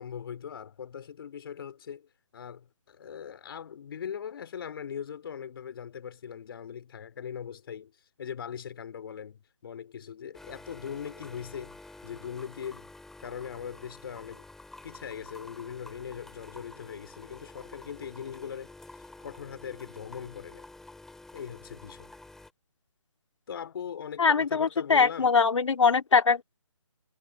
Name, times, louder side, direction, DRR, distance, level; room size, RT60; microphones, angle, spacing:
voice 1, 0.0-7.9 8.2-12.9 13.2-14.5 14.8-20.7 21.3-22.1 23.5-25.3, left 8 dB, 45° left, 3.7 m, -40 dB
sound 1, 10.3-22.5, left 2 dB, ahead, 2.8 m, -49 dB
voice 2, 24.2-26.4, left 5 dB, 65° left, 2.3 m, -22 dB
figure-of-eight pair, 150°, 16 cm